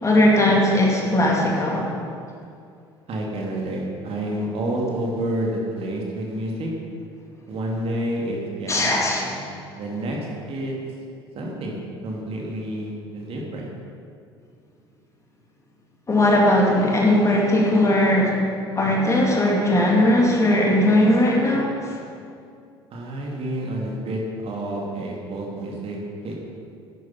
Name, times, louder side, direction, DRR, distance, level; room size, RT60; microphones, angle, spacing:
voice 1, 0.0-1.9 8.7-9.3 16.1-18.4 18.7-22.0, left 1 dB, 20° left, -2 dB, 2.6 m, -18 dB
voice 2, 3.1-6.7 7.5-10.2 10.5-10.7 11.3-11.8 12.0-13.7 22.9-26.0 26.2-26.5, right 1 dB, 45° right, -1 dB, 2.4 m, -29 dB
10.5 x 9.2 x 5.7 m, 2.4 s
figure-of-eight pair, 60°, 14 cm